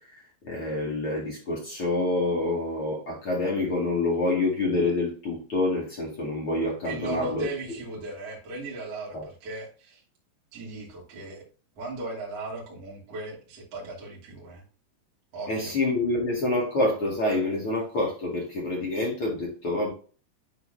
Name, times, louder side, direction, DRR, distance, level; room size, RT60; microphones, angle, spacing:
voice 1, 0.1-7.5 9.1-9.2 15.5-19.9, left 2 dB, 40° left, -3 dB, 2.1 m, -27 dB
voice 2, 6.8-10.0 10.5-11.4 11.8-14.6 15.3-15.7, right 2 dB, 40° right, -4 dB, 3.4 m, -37 dB
10.5 x 4.3 x 2.7 m, 0.37 s
omnidirectional pair, 5.1 m